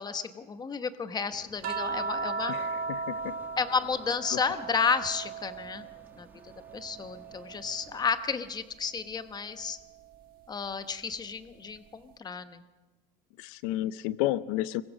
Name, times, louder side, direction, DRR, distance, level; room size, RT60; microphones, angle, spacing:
voice 1, 0.0-2.5 3.6-5.9 6.2-9.8 10.5-12.6, left 5 dB, 20° left, 11 dB, 1.0 m, -32 dB
sound 1, 1.3-8.1, right 2 dB, 10° right, 1.9 m, -56 dB
sound 2, 1.6-6.1 6.5-8.1 9.6-9.8, right 4 dB, 45° right, 1.5 m, -36 dB
voice 2, 2.5-3.4 4.3-4.4 13.4-14.8, left 15 dB, 80° left, 16 dB, 0.7 m, -31 dB
26.0 x 22.5 x 6.4 m, 1.3 s
cardioid pair, 150°, 21 cm